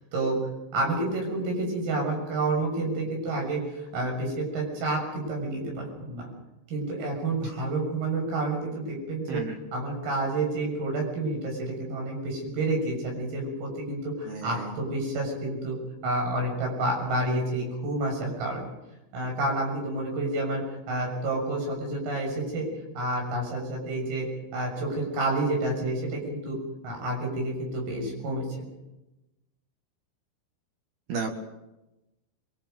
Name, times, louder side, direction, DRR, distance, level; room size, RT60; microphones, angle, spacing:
voice 1, 0.7-6.3 6.7-9.4 9.7-15.8 16.0-18.7 19.1-22.7 23.0-24.3 24.5-26.6 26.8-28.5, right 2 dB, 85° right, 0 dB, 9.7 m, -29 dB
voice 2, 14.3-14.6 31.1-31.3, right 4 dB, 60° right, 2 dB, 2.8 m, -32 dB
27.0 x 23.0 x 5.3 m, 0.98 s
omnidirectional pair, 5.8 m